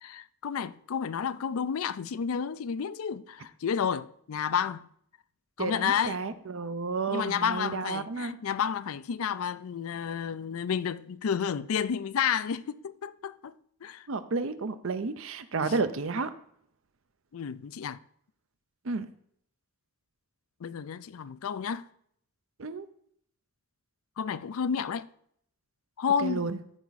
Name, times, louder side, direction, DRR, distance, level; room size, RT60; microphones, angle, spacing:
voice 1, 0.0-4.9 5.6-6.2 7.1-13.5 13.8-14.1 15.7-15.8 17.3-18.0 20.6-21.8 24.2-25.1 26.0-26.5, left 7 dB, 75° left, 0.4 m, -31 dB
voice 2, 5.6-8.4 14.1-16.3 18.8-19.1 22.6-22.8 26.2-26.6, right 4 dB, 65° right, 0.6 m, -31 dB
14.0 x 4.8 x 4.1 m
head